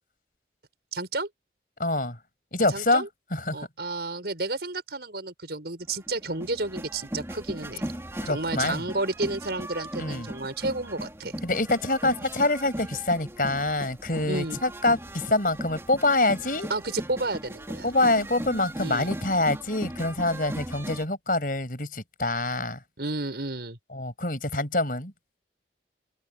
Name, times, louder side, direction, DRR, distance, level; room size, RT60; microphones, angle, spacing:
voice 1, 0.9-1.3 2.7-3.1 3.5-7.8 8.2-11.3 14.2-14.6 16.7-17.9 18.8-19.1 23.0-23.8, right 2 dB, 70° right, 5.8 m, -31 dB
voice 2, 1.8-2.2 2.5-3.1 3.3-3.6 8.2-8.8 10.0-10.3 11.4-16.7 17.8-22.8 23.9-25.1, left 2 dB, 50° left, 5.6 m, -26 dB
sound 1, 5.9-21.0, right 1 dB, 15° right, 3.0 m, -38 dB
head